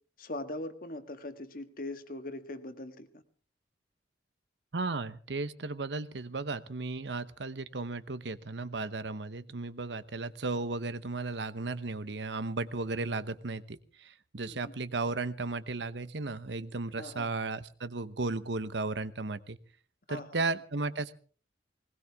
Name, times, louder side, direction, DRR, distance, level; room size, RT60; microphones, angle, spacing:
voice 1, 0.2-3.2 14.5-14.7 17.0-17.3 20.1-20.3, left 2 dB, 50° left, 8 dB, 1.7 m, -41 dB
voice 2, 4.7-19.6 20.1-21.1, right 3 dB, 80° right, 14 dB, 1.0 m, -35 dB
20.5 x 19.5 x 3.5 m, 0.42 s
head